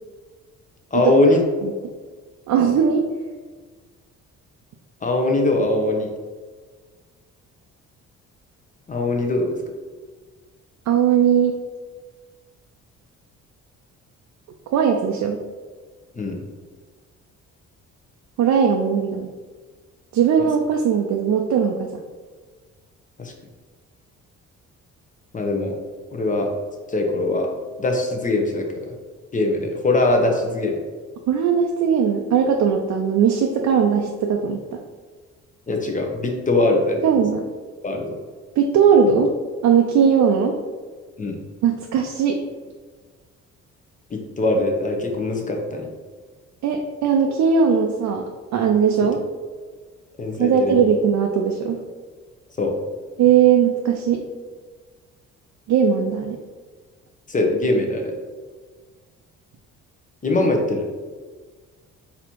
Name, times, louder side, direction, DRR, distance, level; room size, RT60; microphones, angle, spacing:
voice 1, 0.9-1.4 5.0-6.1 8.9-9.5 16.1-16.4 23.2-23.3 25.3-25.8 26.1-26.5 26.9-27.5 27.8-28.9 29.3-30.8 35.7-37.0 37.8-38.1 41.2-41.4 44.1-45.9 50.2-50.7 52.6-52.7 57.3-58.1 60.2-60.9, left 2 dB, 25° left, 2 dB, 0.9 m, -21 dB
voice 2, 2.5-3.1 10.9-11.5 14.7-15.4 18.4-19.3 20.1-21.9 31.3-34.8 37.0-37.5 38.6-39.3 39.6-40.6 41.6-42.4 46.6-48.2 48.5-49.2 50.4-51.8 53.2-54.2 55.7-56.4, right 7 dB, 70° right, 2 dB, 0.5 m, -19 dB
4.1 x 2.8 x 4.4 m, 1.4 s
cardioid pair, 90°, 30 cm